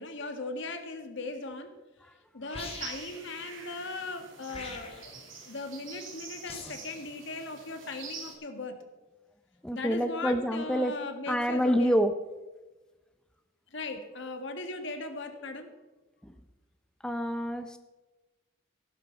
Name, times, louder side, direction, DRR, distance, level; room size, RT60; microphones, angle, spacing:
voice 1, 0.0-1.7 2.3-5.1 5.4-8.8 9.7-12.0 13.7-15.7, left 2 dB, 65° left, 6 dB, 1.7 m, -38 dB
sound 1, 2.5-3.2 4.5-5.2 6.5-6.9, left 4 dB, 30° left, 2.1 m, -43 dB
sound 2, 2.6-8.3, right 5 dB, 85° right, 3.3 m, -46 dB
voice 2, 9.6-10.9 11.3-12.1 16.2-16.3 17.0-17.8, equal, 5° left, 8 dB, 0.5 m, -27 dB
15.5 x 12.0 x 4.5 m, 1.2 s
head